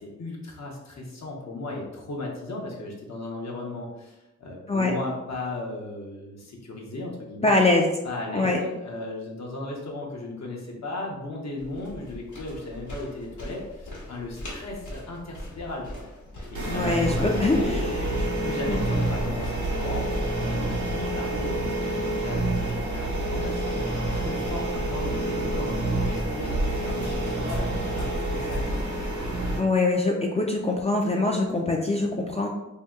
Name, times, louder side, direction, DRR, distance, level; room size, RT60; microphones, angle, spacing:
voice 1, 0.0-7.5 8.0-16.0 16.5-23.8 24.2-28.8, left 2 dB, 65° left, -2 dB, 0.7 m, -36 dB
voice 2, 7.4-7.9 8.3-8.6 16.7-17.9 18.7-18.8 29.6-32.5, left 2 dB, 25° left, 0 dB, 0.3 m, -23 dB
sound 1, 11.6-21.6, equal, 90° left, 1.0 m, -42 dB
sound 2, 16.5-29.6, right 1 dB, 80° right, 1.0 m, -28 dB
2.7 x 2.2 x 3.5 m, 0.97 s
cardioid pair, 65°, 29 cm